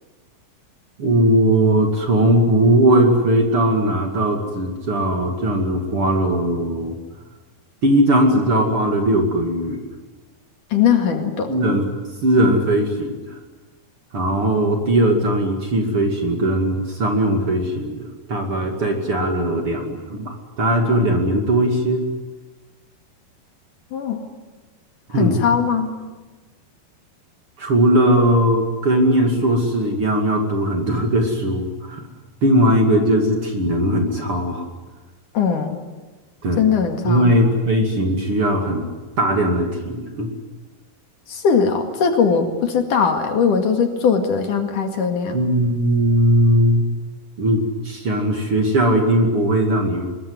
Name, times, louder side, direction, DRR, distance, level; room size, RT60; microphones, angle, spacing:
voice 1, 1.0-7.0 7.8-9.9 11.5-11.9 12.2-13.4 14.1-22.0 25.1-25.4 27.6-32.1 32.4-34.7 36.4-36.6 37.0-38.9 39.2-40.3 45.3-46.8 47.4-50.1, right 1 dB, 40° right, 3 dB, 2.9 m, -19 dB
voice 2, 10.7-11.5 23.9-24.2 25.1-25.9 35.3-35.8 36.6-37.3 41.3-45.4, left 6 dB, 60° left, 5 dB, 3.4 m, -20 dB
24.0 x 22.0 x 9.7 m, 1.3 s
omnidirectional pair, 4.5 m